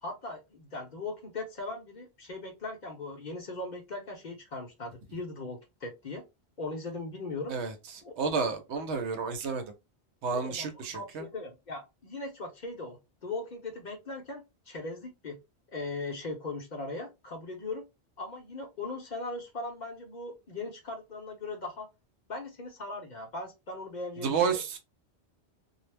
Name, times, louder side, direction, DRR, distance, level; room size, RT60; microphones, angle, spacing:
voice 1, 0.0-6.2 6.6-7.5 8.0-8.1 10.3-15.4 15.7-17.8 18.2-21.9 22.3-24.6, left 2 dB, 50° left, 0.7 m, -39 dB
voice 2, 7.5-9.6 10.2-11.3 24.2-24.8, right 5 dB, 80° right, 0.9 m, -31 dB
2.3 x 2.0 x 3.1 m
omnidirectional pair, 1.2 m